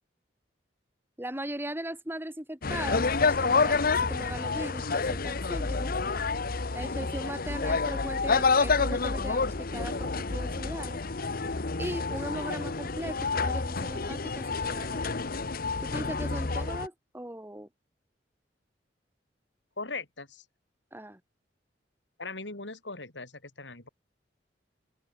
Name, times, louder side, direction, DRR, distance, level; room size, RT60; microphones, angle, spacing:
voice 1, 1.2-5.9 6.7-11.0 11.8-15.2 15.8-17.7 20.9-21.2, right 1 dB, 15° right, 3.4 m, -39 dB
sound 1, 2.6-16.9, left 4 dB, 55° left, 1.1 m, -28 dB
voice 2, 19.8-20.4 22.2-23.9, left 3 dB, 85° left, 6.4 m, -39 dB
open air
head